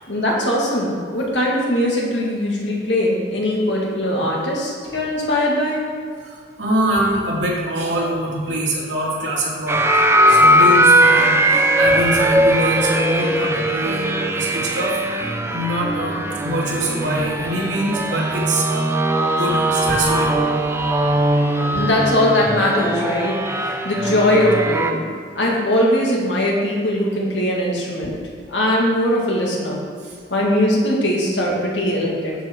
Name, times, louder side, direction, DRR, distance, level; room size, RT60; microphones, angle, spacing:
voice 1, 0.1-5.8 21.7-25.0 25.3-28.2 28.5-29.8 30.3-32.3, left 1 dB, 75° left, -2 dB, 2.3 m, -20 dB
voice 2, 6.2-14.0 14.3-19.0 19.4-20.5 30.0-30.2, right 1 dB, 85° right, -4 dB, 2.9 m, -24 dB
sound 1, 9.7-24.9, right 1 dB, 15° right, 0.7 m, -19 dB
9.9 x 8.1 x 4.7 m, 2.2 s
head